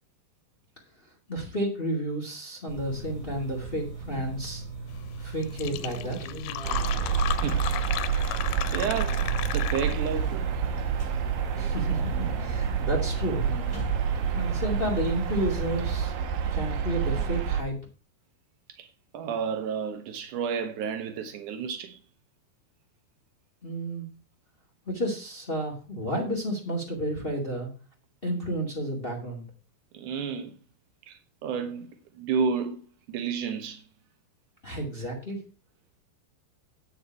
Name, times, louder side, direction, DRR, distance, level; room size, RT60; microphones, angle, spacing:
voice 1, 1.3-4.6 5.2-6.3 11.6-13.5 14.3-16.1 16.5-17.8 23.6-24.0 24.8-27.7 28.2-29.4 34.6-35.4, right 1 dB, 35° left, 0.9 m, -31 dB
sound 1, 2.7-15.9, right 3 dB, 5° right, 6.0 m, -38 dB
Fill (with liquid), 5.1-5.2 5.4-10.2, left 15 dB, 90° left, 2.9 m, -34 dB
sound 2, 6.6-17.6, right 7 dB, 65° right, 2.4 m, -28 dB
voice 2, 8.7-10.5 18.8-18.9 19.1-22.0 29.9-30.5 31.1-31.9 32.1-32.8 33.1-33.8, right 6 dB, 90° right, 1.7 m, -31 dB
9.4 x 8.8 x 4.6 m
omnidirectional pair, 5.0 m